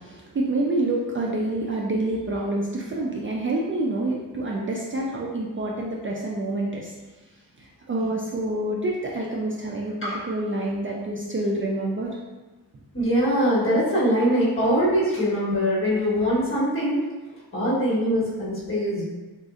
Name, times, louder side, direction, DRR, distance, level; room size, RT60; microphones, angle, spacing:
voice 1, 0.0-6.9 7.6-12.2, right 2 dB, 35° right, -3 dB, 0.4 m, -27 dB
voice 2, 12.9-17.0 17.5-19.0, equal, 35° left, -7 dB, 1.3 m, -22 dB
3.8 x 2.4 x 2.4 m, 1.2 s
cardioid pair, 90°, 37 cm